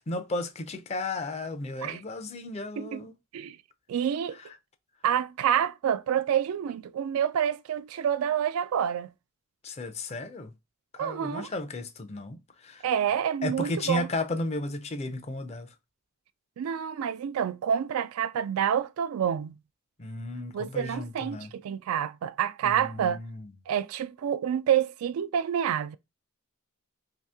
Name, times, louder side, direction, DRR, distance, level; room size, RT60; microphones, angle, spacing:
voice 1, 0.1-3.1 9.6-10.5 10.9-12.8 13.4-15.7 20.0-21.5 22.6-23.5, left 2 dB, 30° left, 0.5 m, -34 dB
voice 2, 3.9-4.4 5.0-9.1 11.0-11.5 12.8-14.1 16.6-19.6 20.5-23.2 23.7-26.0, right 9 dB, 90° right, 0.3 m, -28 dB
2.8 x 2.7 x 3.4 m
head